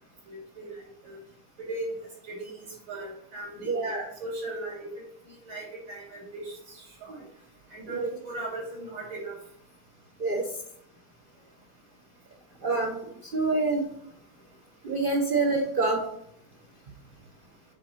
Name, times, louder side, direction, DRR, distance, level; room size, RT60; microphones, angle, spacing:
voice 1, 0.3-1.2 1.6-2.0 2.2-4.9 5.3-7.2 7.7-9.4, right 2 dB, 85° right, -3 dB, 3.4 m, -38 dB
voice 2, 3.7-4.1 7.9-8.1 10.2-10.4 12.6-13.8 14.8-16.0, right 3 dB, 65° right, 0 dB, 0.5 m, -26 dB
7.7 x 3.8 x 4.8 m, 0.72 s
omnidirectional pair, 2.1 m